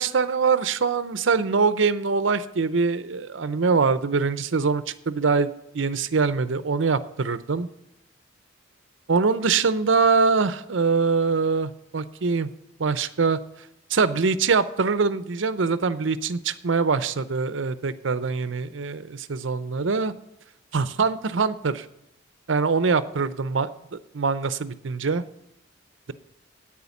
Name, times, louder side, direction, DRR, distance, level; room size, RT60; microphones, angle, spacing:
voice 1, 0.0-7.7 9.1-12.5 12.8-13.4 13.9-20.1 20.7-21.9 22.5-25.2, right 4 dB, 75° right, 14 dB, 0.6 m, -23 dB
9.4 x 8.7 x 7.1 m, 0.81 s
head